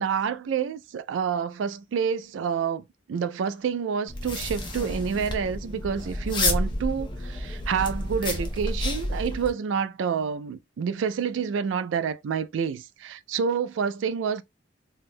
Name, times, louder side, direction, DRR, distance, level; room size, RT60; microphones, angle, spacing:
voice 1, 0.0-14.4, right 6 dB, 85° right, 0.3 m, -28 dB
sound 1, 4.1-9.5, left 1 dB, 25° left, 0.6 m, -30 dB
2.5 x 2.3 x 3.4 m
head